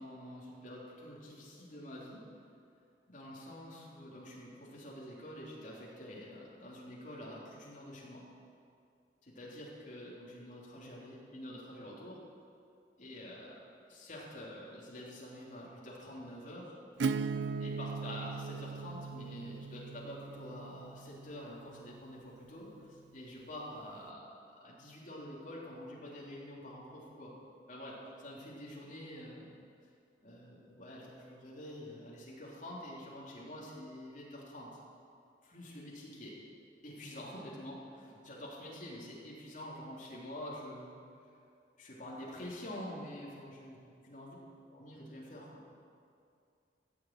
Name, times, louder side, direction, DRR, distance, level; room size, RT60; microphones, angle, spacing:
voice 1, 0.0-2.2 3.1-8.2 9.2-12.2 13.0-13.6 13.9-16.8 17.6-27.3 27.7-29.5 30.2-34.7 35.4-36.3 36.8-41.0 41.8-44.4 44.7-45.7, left 1 dB, 45° left, -5 dB, 3.5 m, -47 dB
Acoustic guitar / Strum, 17.0-22.5, right 4 dB, 80° right, 0.4 m, -39 dB
15.0 x 7.3 x 9.1 m, 2.4 s
head